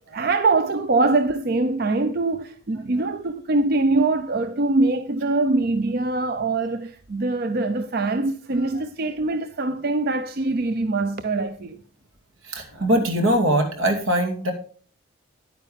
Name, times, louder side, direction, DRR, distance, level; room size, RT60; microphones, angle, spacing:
voice 1, 0.1-11.8, right 3 dB, 50° right, 0.5 m, -23 dB
voice 2, 12.4-14.5, right 1 dB, 80° right, 2.4 m, -22 dB
9.8 x 9.3 x 3.4 m
head